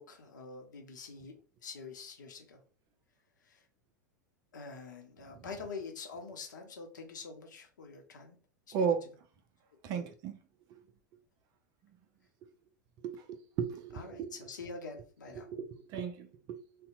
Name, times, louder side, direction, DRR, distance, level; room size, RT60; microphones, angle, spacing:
voice 1, 0.0-1.3 1.6-2.6 3.4-3.7 4.5-8.4 8.7-9.0 9.9-10.1 13.9-15.5, left 4 dB, 70° left, 0.7 m, -46 dB
voice 2, 9.8-10.3 13.0-14.3 15.4-16.6, right 6 dB, 40° right, 0.4 m, -35 dB
2.7 x 2.1 x 2.4 m
figure-of-eight pair, 85°, 10 cm